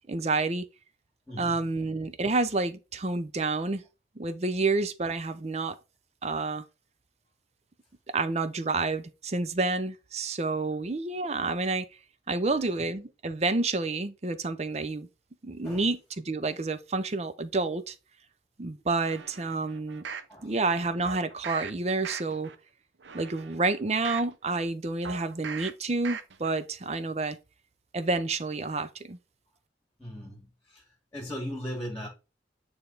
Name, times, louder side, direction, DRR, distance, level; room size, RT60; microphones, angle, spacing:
voice 1, 0.1-0.6 1.4-3.8 4.2-5.8 6.2-6.6 8.1-11.9 12.3-15.1 15.4-17.9 18.6-20.0 20.4-22.5 23.1-27.4 27.9-29.2, right 3 dB, 35° right, 0.6 m, -29 dB
voice 2, 1.3-1.6 12.4-12.8 15.6-15.9 20.3-20.5 30.0-32.1, equal, 10° left, 1.8 m, -39 dB
sound 1, 19.1-20.3 21.0-21.7 22.0-22.5 23.0-24.3 25.0-25.7 26.0-26.5 26.9-27.0, right 6 dB, 85° right, 0.7 m, -40 dB
8.9 x 3.5 x 3.9 m
head